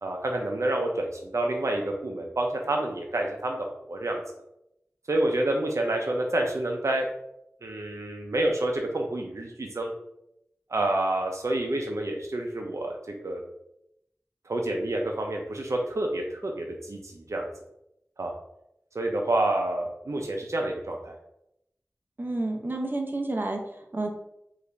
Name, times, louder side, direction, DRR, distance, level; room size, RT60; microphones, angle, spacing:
voice 1, 0.0-4.2 5.1-7.1 7.6-9.9 10.7-13.0 13.2-13.4 14.5-17.5 18.2-18.3 18.9-21.1, right 1 dB, 80° right, 2 dB, 0.5 m, -28 dB
voice 2, 22.2-24.1, right 2 dB, 40° right, 2 dB, 0.7 m, -30 dB
4.9 x 2.5 x 3.2 m, 0.81 s
wide cardioid pair, 55°, 5 cm